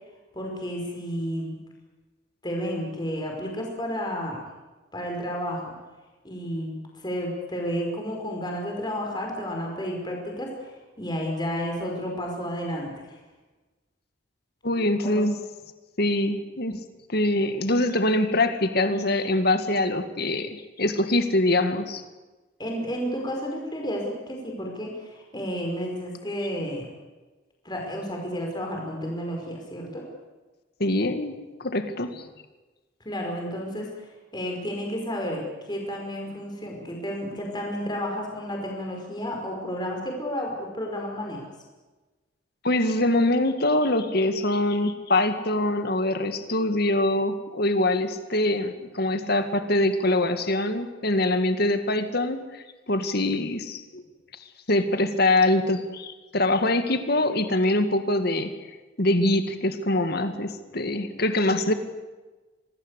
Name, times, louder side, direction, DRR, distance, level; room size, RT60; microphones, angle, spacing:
voice 1, 0.3-1.6 2.4-4.4 4.9-5.7 6.2-13.2 15.0-15.2 22.6-26.9 27.6-30.0 33.0-41.5, equal, 20° left, 0 dB, 5.3 m, -31 dB
voice 2, 14.6-15.4 16.0-16.8 17.1-22.0 30.8-31.3 31.6-32.2 42.6-54.0 54.7-58.5 59.0-61.7, left 1 dB, 50° left, 8 dB, 2.1 m, -24 dB
26.0 x 19.5 x 8.4 m, 1.2 s
head